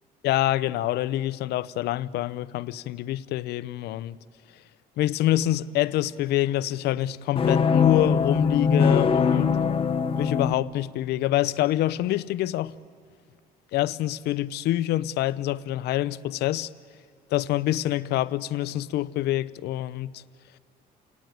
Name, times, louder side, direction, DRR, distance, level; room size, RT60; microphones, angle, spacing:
voice 1, 0.2-4.2 5.0-9.5 10.2-12.7 13.7-16.7 17.3-20.2, left 14 dB, 75° left, 0.6 m, -26 dB
sound 1, 7.4-10.5, left 5 dB, 35° left, 0.9 m, -22 dB
29.5 x 18.5 x 9.2 m
cardioid pair, 110°, 17 cm